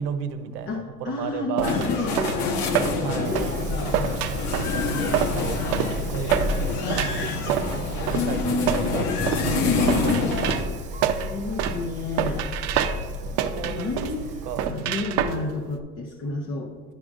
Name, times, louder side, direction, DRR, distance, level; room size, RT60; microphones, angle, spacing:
voice 1, 0.0-1.9 3.0-3.4 4.5-10.0 13.2-13.9 14.4-15.0, right 8 dB, 85° right, 0.8 m, -35 dB
voice 2, 0.7-4.2 8.1-8.8 9.5-10.2 11.2-12.5 13.5-14.3 14.6-16.7, left 3 dB, 30° left, 0.7 m, -30 dB
sound 1, 1.6-10.6, left 4 dB, 75° left, 1.1 m, -27 dB
sound 2, 1.6-15.8, right 9 dB, 50° right, 0.6 m, -28 dB
Wind, 3.2-14.7, equal, 15° right, 0.7 m, -33 dB
11.5 x 4.9 x 2.4 m
supercardioid pair, 120°, 47 cm